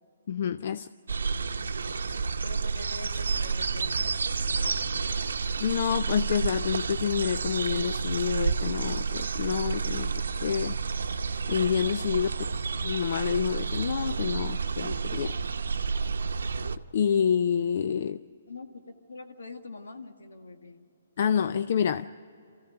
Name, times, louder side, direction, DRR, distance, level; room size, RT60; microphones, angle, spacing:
voice 1, 0.3-0.9 5.6-10.8 11.5-12.3 12.8-15.3 16.9-18.2 21.2-22.1, left 7 dB, 55° left, 13 dB, 0.5 m, -28 dB
sound 1, 1.1-16.8, right 5 dB, 85° right, 0.8 m, -30 dB
voice 2, 2.4-5.1 12.3-12.5 18.5-20.8, left 3 dB, 85° left, 5 dB, 1.9 m, -45 dB
24.0 x 15.0 x 8.8 m, 2.7 s
hypercardioid pair, 150°, 0 cm